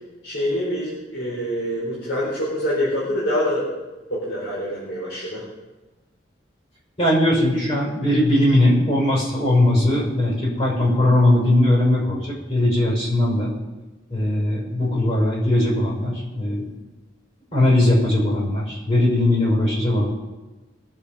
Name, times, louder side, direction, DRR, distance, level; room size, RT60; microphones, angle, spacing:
voice 1, 0.2-3.8 4.1-5.4, equal, 75° left, -7 dB, 4.2 m, -25 dB
voice 2, 7.0-13.5 14.1-16.6 17.5-20.1, left 1 dB, 30° left, -4 dB, 5.6 m, -19 dB
21.0 x 7.7 x 5.3 m, 1.2 s
head